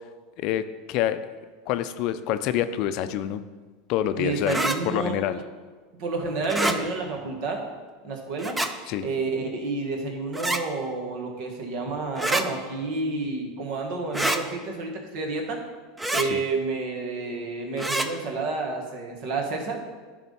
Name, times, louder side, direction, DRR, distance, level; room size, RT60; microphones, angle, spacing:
voice 1, 0.4-1.2 1.7-3.4 3.9-4.6 4.8-5.4 8.9-9.1 16.3-16.4, left 11 dB, 60° left, 11 dB, 0.5 m, -27 dB
voice 2, 4.1-5.4 6.0-7.6 8.0-8.6 9.0-15.6 16.1-19.8, right 3 dB, 60° right, 2 dB, 1.6 m, -30 dB
sound 1, 4.5-4.8 6.4-6.8 8.4-8.7 10.3-10.6 12.2-12.4 14.1-14.4 16.0-16.3 17.8-18.1, right 1 dB, 10° right, 0.6 m, -26 dB
10.5 x 3.6 x 5.4 m, 1.4 s
supercardioid pair, 105°, 0 cm